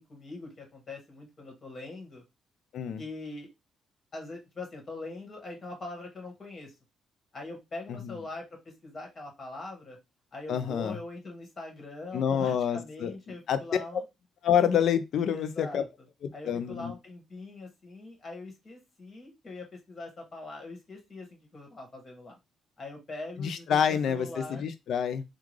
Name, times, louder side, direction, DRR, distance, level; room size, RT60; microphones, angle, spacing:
voice 1, 0.0-2.2 3.0-3.5 4.1-6.7 7.3-8.4 8.8-10.0 10.3-14.0 15.3-15.9 16.3-22.4 22.8-24.7, left 2 dB, 40° left, 1.7 m, -42 dB
voice 2, 10.5-11.0 12.1-13.1 13.5-13.6 13.9-14.0 14.4-15.8 16.2-16.9 23.4-25.2, left 8 dB, 70° left, 0.5 m, -27 dB
3.7 x 2.4 x 3.1 m
cardioid pair, 90°, 0 cm